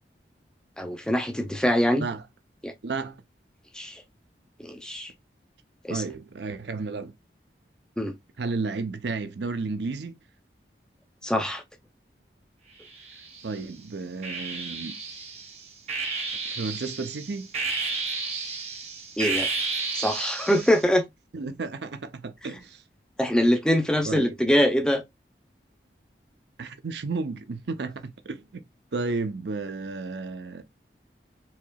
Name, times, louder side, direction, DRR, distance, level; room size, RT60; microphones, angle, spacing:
voice 1, 0.8-2.1 2.6-2.7 3.7-4.0 4.6-5.1 5.8-6.0 8.0-8.1 11.2-11.6 19.2-19.5 19.9-21.0 23.2-25.0, equal, 5° left, 0.5 m, -23 dB
voice 2, 2.8-3.2 5.9-7.1 8.4-10.2 13.4-15.0 16.5-17.5 21.3-22.8 24.1-24.3 26.6-28.6 28.9-30.6, right 3 dB, 80° right, 0.6 m, -32 dB
sound 1, 12.8-13.6 14.2-20.9, right 4 dB, 35° right, 1.0 m, -32 dB
4.4 x 2.8 x 2.3 m
head